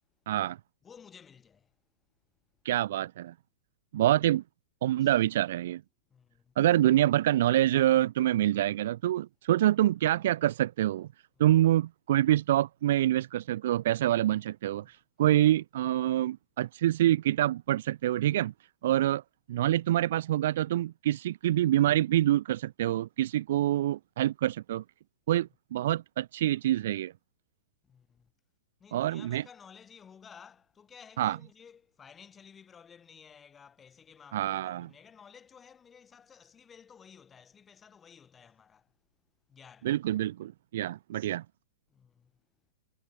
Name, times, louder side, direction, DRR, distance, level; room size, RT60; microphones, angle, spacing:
voice 1, 0.3-0.6 2.6-3.3 3.9-4.4 4.8-5.8 6.6-11.1 11.4-18.5 18.8-19.2 19.5-24.8 25.3-27.1 28.9-29.4 31.2-31.4 34.3-34.9 39.8-41.4, right 13 dB, 50° right, 1.0 m, -26 dB
voice 2, 0.8-1.8 5.0-5.1 6.1-6.6 11.4-11.5 14.7-14.9 27.8-28.3 28.8-39.0 39.5-40.0 41.9-42.4, left 7 dB, 10° left, 7.4 m, -55 dB
supercardioid pair, 175°, 0 cm